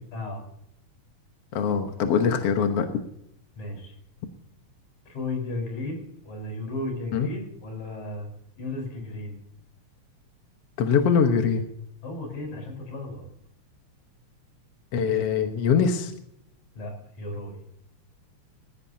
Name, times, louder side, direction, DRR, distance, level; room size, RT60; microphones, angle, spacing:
voice 1, 0.1-0.4 3.6-3.9 5.1-8.3 8.6-9.4 12.0-13.3 16.8-17.6, left 2 dB, 75° left, 2 dB, 6.0 m, -34 dB
voice 2, 1.5-2.9 7.1-7.3 10.8-11.6 14.9-16.1, left 6 dB, 60° left, 5 dB, 2.0 m, -22 dB
18.5 x 16.0 x 2.8 m, 0.75 s
omnidirectional pair, 3.4 m